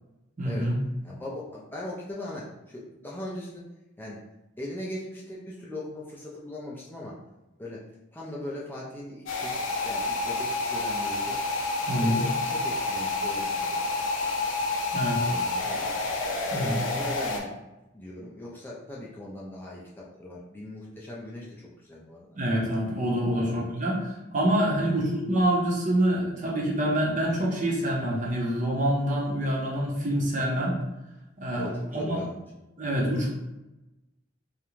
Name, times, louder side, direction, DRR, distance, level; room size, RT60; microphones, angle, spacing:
voice 1, 0.4-0.8 11.9-12.2 14.9-15.3 16.5-16.9 22.3-30.7 31.4-32.2 32.8-33.3, right 1 dB, 40° right, -3 dB, 0.6 m, -26 dB
voice 2, 1.0-3.6 4.0-4.2 4.6-7.1 7.6-7.8 8.1-9.6 9.8-11.4 11.9-13.8 15.2-15.9 16.5-17.5 17.9-22.3 23.4-23.6 24.8-25.0 31.5-32.4, left 1 dB, 10° left, -5 dB, 0.3 m, -39 dB
sound 1, 9.3-17.4, left 3 dB, 80° left, 0.5 m, -29 dB
2.4 x 2.1 x 3.0 m, 0.98 s
head